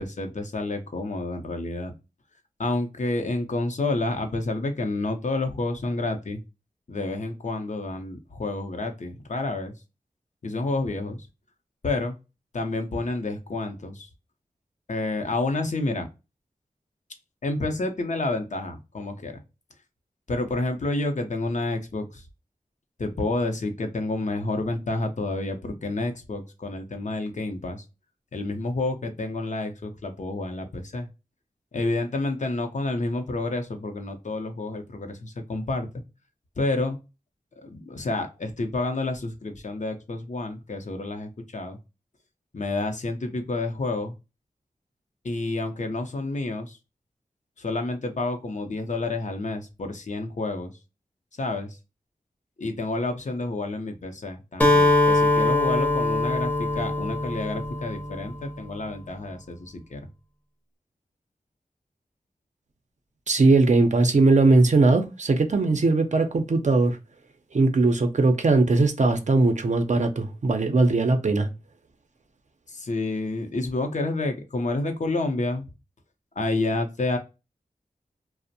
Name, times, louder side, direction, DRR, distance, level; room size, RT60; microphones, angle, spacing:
voice 1, 0.0-1.9 2.6-6.4 6.9-9.7 10.4-11.3 11.8-12.1 12.5-14.1 14.9-16.1 17.4-19.3 20.3-22.2 23.0-27.8 28.3-31.1 31.7-35.9 36.6-37.0 37.6-41.8 42.5-44.1 45.2-46.8 47.6-50.7 51.4-51.8 52.6-60.0 72.7-75.7 76.4-77.2, left 2 dB, 55° left, 0.6 m, -29 dB
Acoustic guitar, 54.6-58.5, left 2 dB, 10° left, 0.7 m, -22 dB
voice 2, 63.3-67.0 67.5-71.5, right 3 dB, 55° right, 0.5 m, -20 dB
2.5 x 2.0 x 2.6 m
wide cardioid pair, 55°, 15 cm